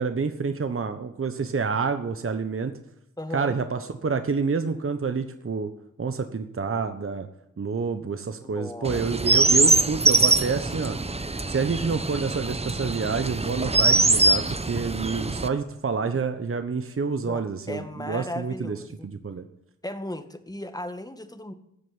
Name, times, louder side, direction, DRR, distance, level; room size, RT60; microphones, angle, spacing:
voice 1, 0.0-2.7 3.3-5.7 6.0-7.3 7.6-11.0 11.5-19.4, right 5 dB, 40° right, 8 dB, 1.1 m, -28 dB
voice 2, 3.2-3.6 8.4-9.1 9.3-9.4 17.2-19.1 19.8-21.5, left 1 dB, 10° left, 8 dB, 1.8 m, -36 dB
Chirp tweet, 8.8-15.5, right 3 dB, 20° right, 0.9 m, -23 dB
14.5 x 7.8 x 8.8 m, 0.80 s
cardioid pair, 50°, 32 cm